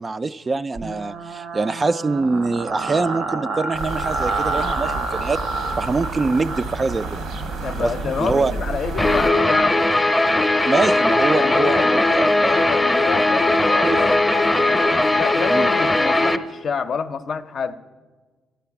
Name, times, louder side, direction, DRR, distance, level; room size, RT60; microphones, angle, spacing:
voice 1, 0.0-5.4 5.8-7.1 7.8-7.9 8.2-8.5 10.6-13.0 13.8-14.0 15.5-15.7, right 3 dB, 30° right, 13 dB, 0.3 m, -24 dB
sound 1, 0.8-9.7, right 4 dB, 70° right, 0.8 m, -29 dB
sound 2, 3.7-9.3, right 2 dB, 85° right, 1.2 m, -31 dB
voice 2, 7.6-9.8 11.3-14.5 15.1-17.8, left 6 dB, 55° left, 10 dB, 0.6 m, -28 dB
Guitar, 9.0-16.4, left 2 dB, 15° left, 0.7 m, -18 dB
13.0 x 10.0 x 5.8 m, 1.4 s
cardioid pair, 90°, 0 cm